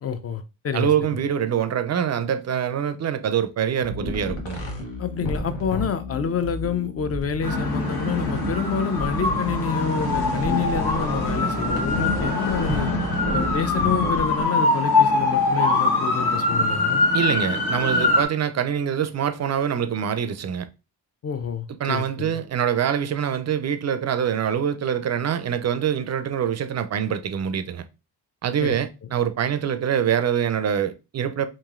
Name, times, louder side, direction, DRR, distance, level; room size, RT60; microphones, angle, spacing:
voice 1, 0.0-0.9 5.0-12.9 13.3-17.0 21.2-22.4 28.6-28.8 29.0-29.1, left 6 dB, 35° left, 0.5 m, -28 dB
voice 2, 0.7-4.6 17.1-20.7 21.8-27.8 28.4-31.5, right 8 dB, 40° right, 0.4 m, -24 dB
sound 1, 3.8-14.4, left 1 dB, 80° left, 0.9 m, -31 dB
sound 2, 7.4-18.3, left 2 dB, 55° left, 1.2 m, -23 dB
3.0 x 2.6 x 2.4 m
supercardioid pair, 45°, 45 cm